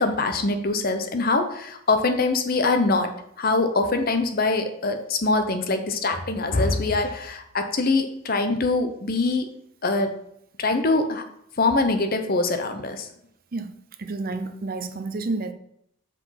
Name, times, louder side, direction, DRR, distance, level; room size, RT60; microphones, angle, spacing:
voice 1, 0.0-9.5 9.8-10.1 10.6-11.3 11.6-13.1, left 3 dB, 45° left, 7 dB, 0.8 m, -23 dB
voice 2, 14.0-15.5, right 3 dB, 45° right, 8 dB, 0.6 m, -30 dB
5.9 x 4.9 x 5.7 m, 0.73 s
head